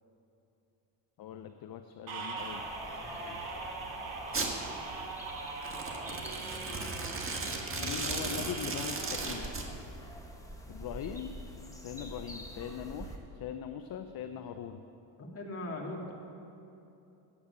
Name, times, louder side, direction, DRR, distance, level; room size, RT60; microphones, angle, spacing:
voice 1, 1.2-2.6 7.8-9.5 10.7-11.4 11.8-13.1 13.4-14.8, left 9 dB, 50° left, 8 dB, 0.6 m, -40 dB
sound 1, 2.1-9.4, right 3 dB, 80° right, 2.6 m, -41 dB
sound 2, 2.4-13.2, equal, 5° left, 1.3 m, -47 dB
voice 2, 3.0-3.8 15.2-16.1, left 1 dB, 30° left, 0 dB, 2.1 m, -41 dB
Domestic sounds home sounds, 4.3-4.5 5.6-9.7, right 3 dB, 25° right, 1.5 m, -36 dB
8.8 x 8.5 x 8.2 m, 2.8 s
cardioid pair, 85°, 46 cm